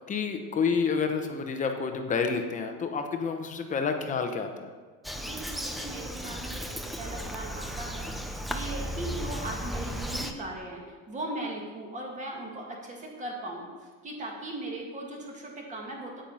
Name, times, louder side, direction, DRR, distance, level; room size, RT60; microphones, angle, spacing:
voice 1, 0.1-4.7, left 5 dB, 25° left, 5 dB, 0.9 m, -29 dB
Bird vocalization bird call bird song, 5.0-10.3, equal, ahead, 0.4 m, -35 dB
voice 2, 5.1-16.2, right 2 dB, 25° right, 0 dB, 1.9 m, -38 dB
9.1 x 9.0 x 5.5 m, 1.5 s
cardioid pair, 170°, 31 cm